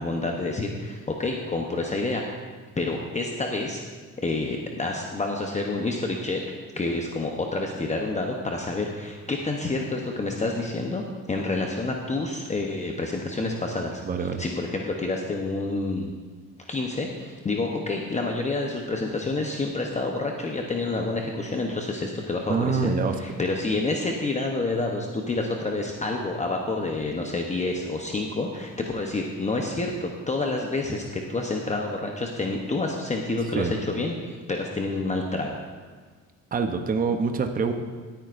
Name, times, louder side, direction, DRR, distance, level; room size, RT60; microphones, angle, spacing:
voice 1, 0.0-2.2 2.8-3.8 4.2-6.4 6.8-16.1 16.7-22.9 23.2-35.6, left 2 dB, 20° left, 1 dB, 0.8 m, -28 dB
voice 2, 14.1-14.4 22.5-23.1 33.5-33.7 36.5-37.7, right 5 dB, 25° right, 6 dB, 0.7 m, -25 dB
18.0 x 9.1 x 2.5 m, 1.5 s
cardioid pair, 115°, 33 cm